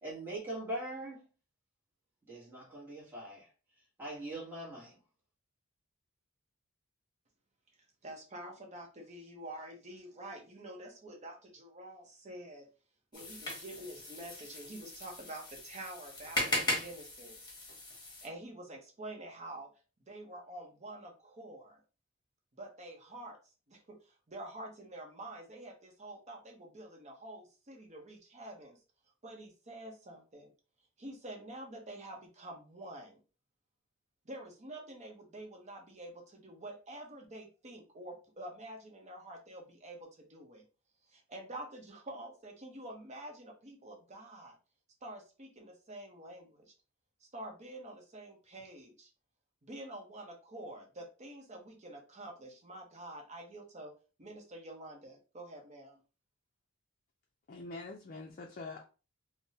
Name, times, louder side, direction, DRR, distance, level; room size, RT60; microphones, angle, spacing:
voice 1, 0.0-1.2 2.3-3.5 4.0-4.9, right 1 dB, 10° right, 1.1 m, -41 dB
voice 2, 8.0-12.7 13.1-19.7 20.1-21.8 22.5-23.4 23.7-28.8 29.2-30.5 31.0-33.2 34.2-40.6 41.1-44.6 45.0-46.7 47.2-49.1 49.6-53.9 54.2-56.0, right 1 dB, 35° right, 0.8 m, -48 dB
sound 1, 13.1-18.3, left 1 dB, 20° left, 1.1 m, -38 dB
voice 3, 57.5-58.9, left 3 dB, 40° left, 0.4 m, -44 dB
3.5 x 2.1 x 2.7 m
head